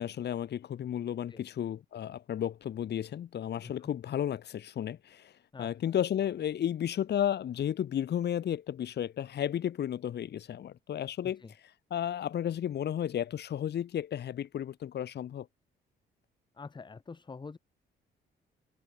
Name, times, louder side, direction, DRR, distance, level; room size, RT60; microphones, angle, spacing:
voice 1, 0.0-11.4 11.9-15.5, left 10 dB, 60° left, 1.2 m, -33 dB
voice 2, 16.5-17.6, left 4 dB, 25° left, 1.0 m, -46 dB
cardioid pair, 90°, 20 cm